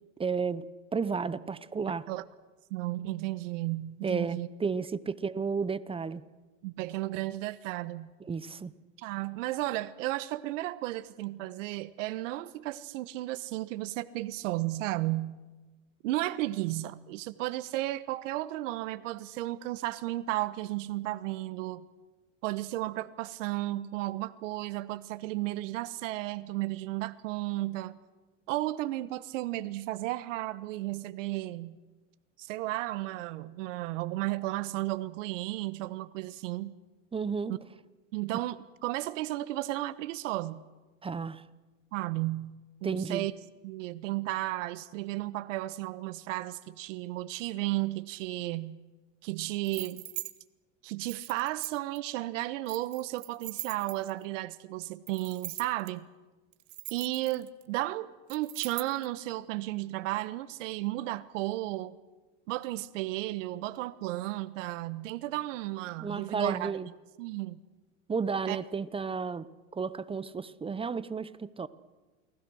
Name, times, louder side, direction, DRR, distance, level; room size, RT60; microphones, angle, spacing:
voice 1, 0.2-0.6 0.9-2.0 4.0-6.2 8.3-8.7 37.1-37.6 41.0-41.4 42.8-43.3 66.0-66.9 68.1-69.5 69.7-71.7, right 5 dB, 15° right, 16 dB, 0.8 m, -32 dB
voice 2, 2.7-4.5 6.6-8.1 9.0-15.4 16.0-21.9 22.4-28.0 28.5-31.8 32.4-36.7 37.5-37.6 38.1-40.6 41.9-43.3 43.6-48.8 49.2-50.0 50.8-56.1 56.9-62.0 62.5-66.7 67.2-67.6 68.5-68.6, right 17 dB, 70° right, 14 dB, 1.2 m, -34 dB
sound 1, 49.6-50.3 51.1-52.0 52.7-54.2 55.1-55.9 56.5-57.6 58.3-59.1, right 16 dB, 45° right, 1.5 m, -41 dB
29.0 x 19.5 x 6.3 m, 1.2 s
supercardioid pair, 115°, 39 cm